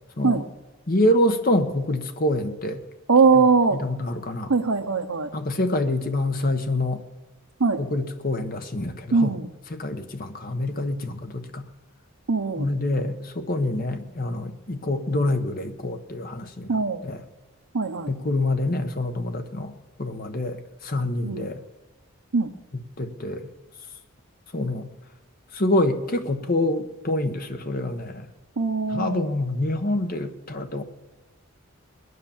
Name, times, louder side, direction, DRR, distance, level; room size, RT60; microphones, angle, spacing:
voice 1, 0.9-2.8 3.7-4.5 5.3-7.0 7.8-9.4 9.7-11.6 12.6-16.7 17.0-17.2 18.1-19.7 20.0-20.6 20.8-21.6 23.0-23.5 24.5-24.9 25.5-28.3 28.9-30.8, left 1 dB, 40° left, 7 dB, 1.1 m, -26 dB
voice 2, 3.1-3.8 4.5-5.3 7.6-7.8 9.1-9.5 12.3-12.7 16.7-17.0 17.7-18.1 21.2-21.5 22.3-22.5 28.6-29.3, right 4 dB, 80° right, 4 dB, 0.8 m, -21 dB
20.5 x 9.6 x 7.2 m, 1.1 s
head